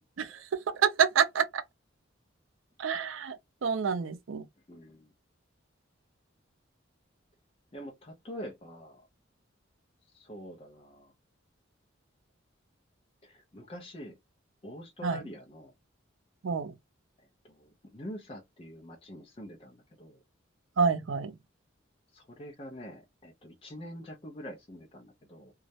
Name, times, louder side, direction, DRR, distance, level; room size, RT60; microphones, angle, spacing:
voice 1, 0.7-1.6 2.8-3.4 3.6-4.5 15.0-15.2 16.4-16.7 20.8-21.4, right 6 dB, 80° right, 0.5 m, -27 dB
voice 2, 4.7-5.1 7.7-9.0 10.1-11.1 13.2-14.2 14.6-15.7 17.2-20.2 22.1-25.5, equal, 30° left, 0.5 m, -45 dB
2.3 x 2.0 x 2.7 m
head